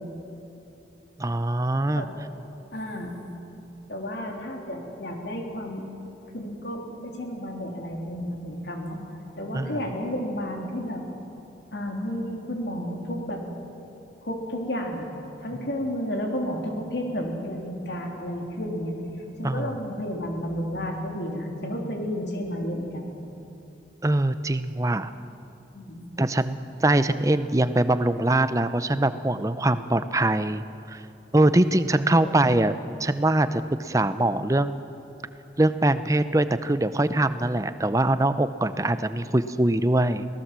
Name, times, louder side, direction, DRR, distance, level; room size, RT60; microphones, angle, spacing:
voice 1, 1.2-2.0 9.5-9.8 19.4-19.7 24.0-25.1 26.2-30.6 30.9-31.0 31.3-34.8 35.6-40.3, right 1 dB, 20° right, 12 dB, 0.6 m, -23 dB
voice 2, 2.7-3.2 3.9-5.9 6.3-9.0 9.4-11.0 11.7-13.4 14.2-15.1 15.4-19.0 19.4-23.1 25.7-26.1 32.1-32.3, equal, 75° left, 1 dB, 3.4 m, -32 dB
24.0 x 17.5 x 7.5 m, 2.9 s
head